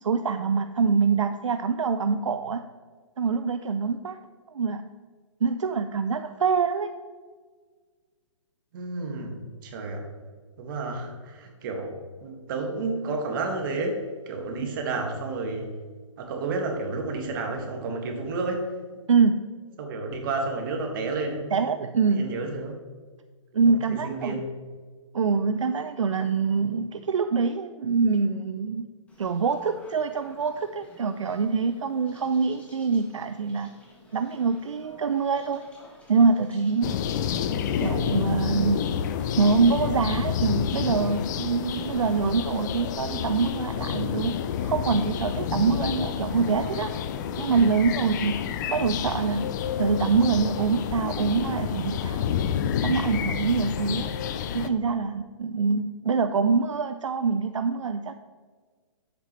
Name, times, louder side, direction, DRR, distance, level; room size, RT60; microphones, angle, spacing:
voice 1, 0.0-2.6 3.2-4.2 4.5-4.9 5.4-6.9 19.1-19.5 21.5-22.3 23.5-24.4 25.1-28.9 29.2-33.7 34.1-35.6 36.1-37.0 37.8-38.8 39.4-44.4 44.6-46.9 47.4-49.5 49.8-52.2 52.8-54.1 54.5-58.1, right 5 dB, 75° right, 9 dB, 0.5 m, -25 dB
voice 2, 8.7-9.4 9.6-10.1 10.6-15.7 16.2-18.8 19.8-21.5 22.1-22.8 23.6-24.5, right 3 dB, 40° right, 3 dB, 1.8 m, -31 dB
sound 1, 29.1-42.8, left 1 dB, 10° left, 1.8 m, -52 dB
sound 2, 36.8-54.7, left 8 dB, 35° left, 0.5 m, -29 dB
9.7 x 8.1 x 3.2 m, 1.5 s
figure-of-eight pair, 135°, 16 cm